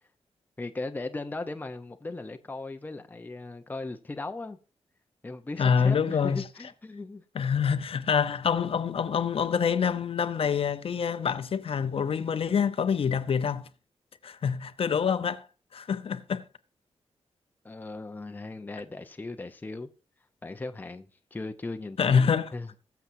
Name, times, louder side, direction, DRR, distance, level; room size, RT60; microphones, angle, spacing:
voice 1, 0.6-4.6 5.2-7.2 17.6-19.9 20.4-21.1 21.3-22.7, left 2 dB, 15° left, 0.7 m, -37 dB
voice 2, 5.6-6.4 7.3-13.7 14.2-15.4 15.7-16.4 22.0-22.5, left 6 dB, 60° left, 0.8 m, -26 dB
21.0 x 7.0 x 2.7 m
wide cardioid pair, 175°, 11 cm